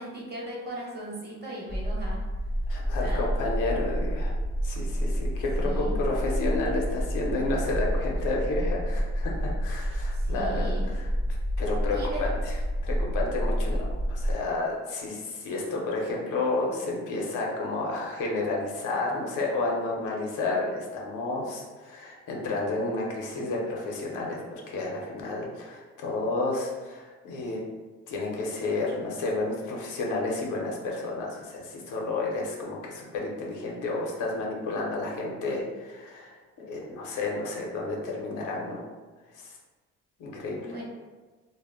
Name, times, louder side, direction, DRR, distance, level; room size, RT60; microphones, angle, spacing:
voice 1, 0.0-2.2 3.0-3.2 5.6-6.0 10.1-10.9 11.9-12.4 40.6-40.8, right 2 dB, 35° right, -4 dB, 1.0 m, -38 dB
sound 1, 1.7-14.3, equal, 5° right, 0.3 m, -29 dB
voice 2, 2.7-4.3 4.6-11.1 11.6-12.6 12.8-27.6 28.1-38.8 39.3-39.6 40.2-40.7, left 2 dB, 85° left, -1 dB, 0.6 m, -31 dB
2.1 x 2.0 x 3.4 m, 1.3 s
cardioid pair, 90°, 30 cm